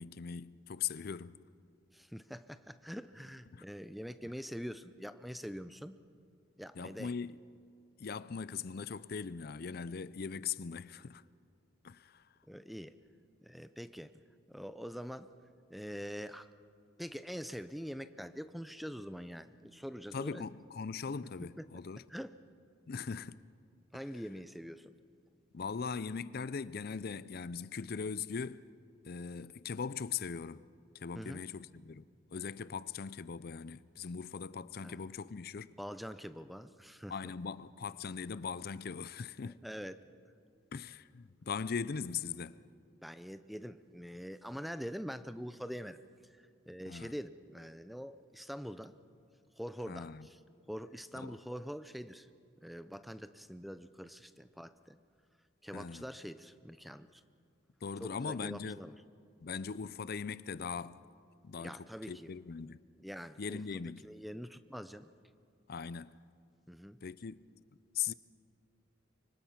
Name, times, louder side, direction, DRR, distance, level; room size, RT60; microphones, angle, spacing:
voice 1, 0.0-1.4 3.5-3.6 6.8-7.4 8.0-11.2 11.8-12.2 20.1-22.0 22.9-23.4 25.5-28.7 29.0-30.6 30.9-32.1 32.3-35.7 37.1-39.6 40.7-42.6 46.9-47.1 49.9-50.3 51.1-51.3 55.7-56.0 57.8-58.8 59.4-61.0 61.4-62.8 63.4-64.0 65.7-66.2 67.0-67.4 67.9-68.1, left 6 dB, 50° left, 0.5 m, -40 dB
voice 2, 1.9-5.9 6.6-7.1 12.5-13.0 13.4-14.1 14.5-15.3 15.7-16.5 17.0-20.5 21.6-21.7 22.1-22.3 23.9-24.9 31.1-31.5 34.8-35.0 35.8-37.3 39.6-40.0 43.0-49.0 49.6-50.4 50.7-52.3 52.6-55.0 55.6-57.2 58.0-59.0 61.6-62.3 63.0-65.1 66.7-67.0, equal, ahead, 0.6 m, -44 dB
25.0 x 24.5 x 5.8 m
head